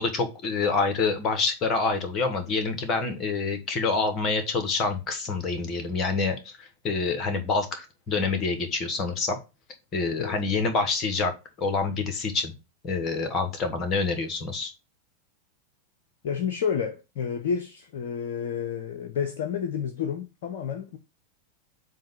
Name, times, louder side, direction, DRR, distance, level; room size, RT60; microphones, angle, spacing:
voice 1, 0.0-9.4 9.9-11.3 11.6-12.5 12.8-14.7, left 4 dB, 30° left, 1.7 m, -27 dB
voice 2, 16.2-21.0, left 7 dB, 55° left, 0.7 m, -30 dB
7.4 x 2.6 x 5.7 m
figure-of-eight pair, 90°, 0 cm